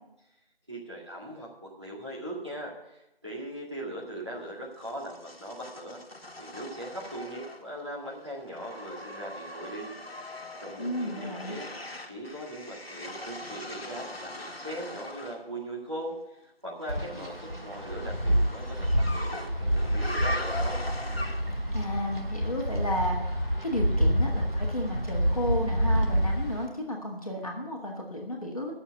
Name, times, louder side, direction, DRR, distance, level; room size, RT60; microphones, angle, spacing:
voice 1, 0.7-6.0 6.4-9.9 10.6-11.7 12.1-20.8, right 1 dB, 30° right, -5 dB, 1.9 m, -40 dB
sound 1, 4.8-7.9 8.2-15.4 17.0-21.7, left 1 dB, 80° left, 1.4 m, -40 dB
voice 2, 10.8-11.6 21.7-23.2 23.6-28.7, left 1 dB, 35° left, -1 dB, 1.8 m, -33 dB
Wind, 16.9-26.6, equal, 75° right, 2.7 m, -28 dB
9.0 x 7.0 x 8.1 m, 0.89 s
figure-of-eight pair, 175°, 30 cm